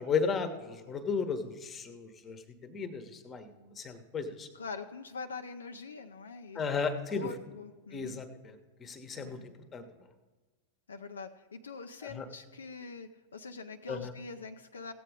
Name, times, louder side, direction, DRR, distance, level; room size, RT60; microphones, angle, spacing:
voice 1, 0.0-4.5 6.5-7.3 7.9-9.8 12.1-12.3 13.9-14.1, left 5 dB, 25° left, 9 dB, 1.1 m, -35 dB
voice 2, 4.5-6.6 6.9-8.2 9.2-9.5 10.9-14.9, left 4 dB, 70° left, 6 dB, 0.5 m, -44 dB
16.0 x 7.8 x 4.8 m, 1.3 s
figure-of-eight pair, 90°, 0 cm